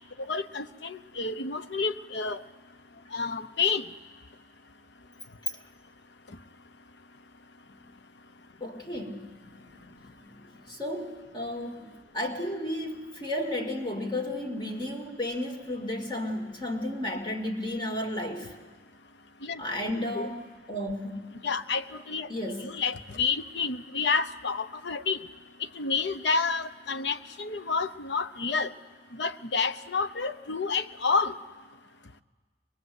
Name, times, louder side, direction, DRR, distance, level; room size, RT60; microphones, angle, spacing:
voice 1, 0.3-2.4 3.1-3.8 19.4-19.6 19.9-20.3 21.4-22.3 22.6-25.2 25.8-28.7 29.1-31.3, left 4 dB, 75° left, 11 dB, 0.9 m, -29 dB
voice 2, 8.6-18.6 19.6-20.4 20.7-21.3 22.3-22.7, left 1 dB, 25° left, 2 dB, 2.4 m, -33 dB
23.5 x 21.5 x 7.9 m, 1.4 s
head